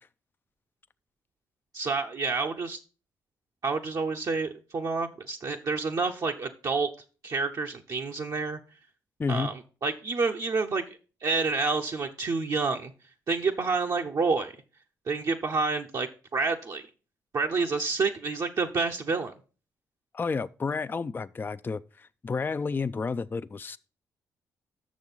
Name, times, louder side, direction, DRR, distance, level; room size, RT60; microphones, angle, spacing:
voice 1, 1.7-2.8 3.6-6.9 7.2-8.6 9.3-12.9 13.3-14.5 15.1-16.9 17.3-19.3, right 4 dB, 50° right, 0.7 m, -29 dB
voice 2, 9.2-9.5 20.1-23.8, left 4 dB, 25° left, 0.3 m, -31 dB
6.5 x 6.2 x 5.5 m
supercardioid pair, 50°, 8 cm